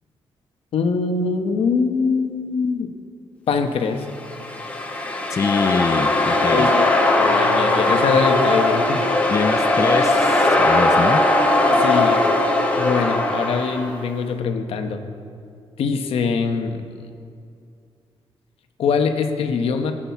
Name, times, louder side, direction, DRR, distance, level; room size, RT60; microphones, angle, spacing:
voice 1, 0.7-2.9 3.5-4.1 6.4-6.9 7.2-9.0 11.8-12.2 12.8-15.0 15.8-16.9 18.8-19.9, left 5 dB, 75° left, 6 dB, 1.0 m, -23 dB
sound 1, 4.1-14.0, left 2 dB, 15° left, 1.3 m, -19 dB
voice 2, 5.3-6.7 9.3-11.2, left 5 dB, 30° left, 7 dB, 0.5 m, -24 dB
16.0 x 8.9 x 5.8 m, 2.4 s
wide cardioid pair, 155°, 10 cm